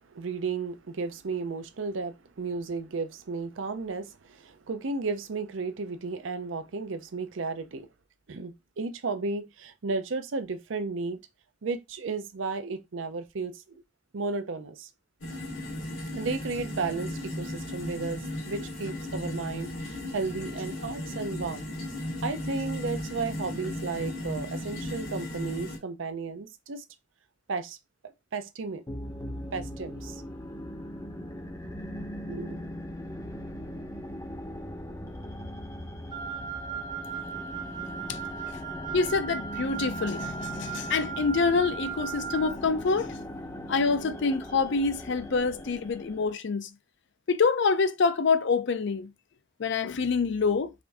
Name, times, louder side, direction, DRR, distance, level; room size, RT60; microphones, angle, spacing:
voice 1, 0.1-7.9 8.3-11.2 11.6-13.6 14.1-14.9 16.1-18.2 18.5-21.7 22.2-26.8 27.5-27.8 28.0-28.8 29.5-30.2 32.3-32.6, right 4 dB, 70° right, 0.6 m, -34 dB
sound 1, 15.2-25.8, left 1 dB, 90° left, 2.2 m, -36 dB
sound 2, 28.9-46.3, left 1 dB, 15° left, 0.6 m, -39 dB
Wind instrument woodwind instrument, 36.1-42.6, right 7 dB, 20° right, 0.5 m, -37 dB
voice 2, 38.9-43.2 43.7-46.7 47.3-49.1 49.6-50.7, left 4 dB, 60° left, 0.5 m, -26 dB
4.9 x 2.6 x 3.4 m
head